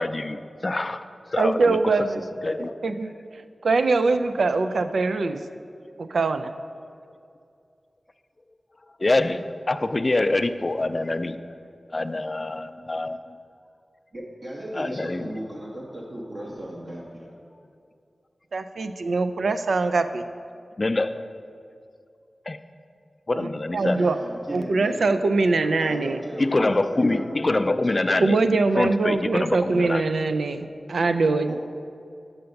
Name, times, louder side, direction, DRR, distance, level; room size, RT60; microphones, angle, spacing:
voice 1, 0.0-1.8 2.4-2.8 9.0-11.4 11.9-13.4 14.7-15.3 20.8-21.3 22.5-22.6 23.3-24.0 26.4-28.4 28.8-30.0, left 2 dB, 45° left, 10 dB, 0.3 m, -25 dB
voice 2, 1.4-2.2 2.8-5.4 6.0-6.5 18.5-20.2 23.3-23.5 23.7-24.2 24.5-26.2 28.2-31.6, right 3 dB, 85° right, 10 dB, 0.3 m, -23 dB
voice 3, 14.1-17.3 23.8-25.1 25.8-28.1 31.5-31.6, right 1 dB, 55° right, -5 dB, 1.1 m, -36 dB
6.7 x 5.7 x 5.2 m, 2.5 s
cardioid pair, 40°, 0 cm